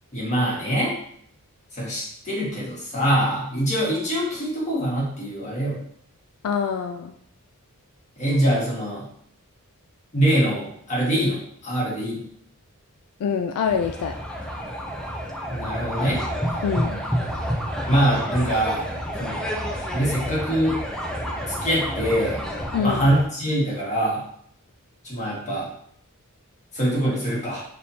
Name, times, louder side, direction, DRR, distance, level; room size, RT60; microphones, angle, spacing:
voice 1, 0.1-1.0 1.7-5.8 8.2-9.1 10.1-12.2 15.5-16.2 17.9-18.9 19.2-19.4 19.9-20.8 21.5-22.4 22.8-24.2 25.0-25.7 26.7-27.6, right 1 dB, 35° left, -5 dB, 1.5 m, -24 dB
voice 2, 6.4-7.1 13.2-14.1 16.6-17.0 22.7-23.0, left 6 dB, 80° left, 5 dB, 0.3 m, -25 dB
sound 1, 13.7-23.2, equal, 5° left, 0.5 m, -29 dB
4.1 x 3.4 x 2.7 m, 0.67 s
head